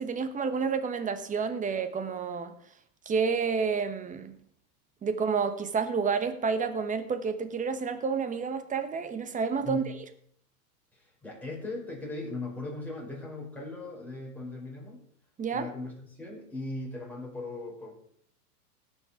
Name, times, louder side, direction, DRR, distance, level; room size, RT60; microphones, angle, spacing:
voice 1, 0.0-2.5 3.1-4.4 5.0-9.8 15.4-15.7, right 5 dB, 15° right, 10 dB, 1.1 m, -29 dB
voice 2, 10.9-15.0 15.5-17.9, left 2 dB, 5° left, -4 dB, 5.1 m, -38 dB
18.0 x 6.4 x 4.9 m, 0.66 s
hypercardioid pair, 110°, 46 cm